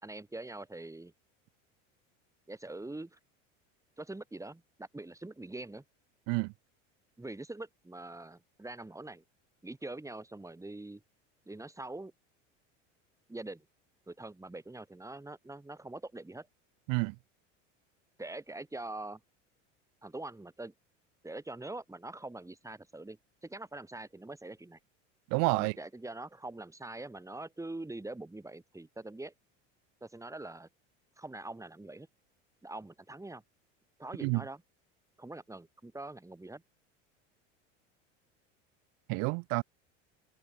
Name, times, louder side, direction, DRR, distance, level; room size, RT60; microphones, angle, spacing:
voice 1, 0.0-1.1 2.5-3.2 4.0-5.8 7.2-9.2 9.6-11.0 11.5-12.1 13.3-13.6 14.1-16.5 18.2-19.2 20.0-20.7 21.2-24.8 25.6-29.3 30.0-30.7 31.2-32.1 32.6-33.4 34.0-34.6 35.2-36.6, right 2 dB, 10° right, 3.4 m, -44 dB
voice 2, 25.3-25.8 34.2-34.4 39.1-39.6, right 38 dB, 65° right, 1.6 m, -29 dB
hypercardioid pair, 85°, 37 cm